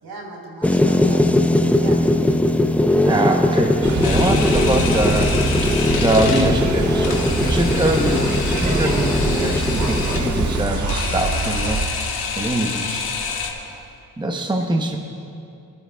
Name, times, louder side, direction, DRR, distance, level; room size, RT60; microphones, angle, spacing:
voice 1, 0.0-2.1, right 2 dB, 70° right, -2 dB, 3.3 m, -37 dB
sound 1, 0.6-10.6, left 1 dB, 5° left, 0.4 m, -20 dB
voice 2, 3.1-11.8 12.4-13.8 14.2-15.0, right 1 dB, 10° right, 3 dB, 0.8 m, -23 dB
sound 2, 3.8-11.9, right 3 dB, 50° right, 1.3 m, -25 dB
Camera, 4.0-13.5, left 5 dB, 70° left, 1.7 m, -28 dB
23.5 x 12.5 x 2.3 m, 2.6 s
cardioid pair, 100°, 38 cm